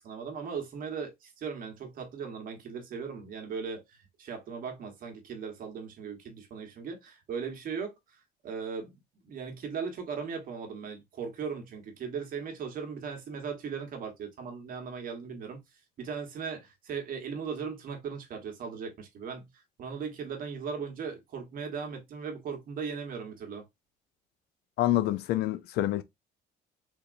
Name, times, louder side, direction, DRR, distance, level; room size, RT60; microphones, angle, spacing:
voice 1, 0.0-7.9 8.4-8.9 9.2-15.6 16.0-19.5 19.8-23.6, right 6 dB, 55° right, 1.2 m, -38 dB
voice 2, 24.8-26.0, left 14 dB, 75° left, 0.5 m, -27 dB
3.5 x 2.8 x 2.5 m
cardioid pair, 110°, 17 cm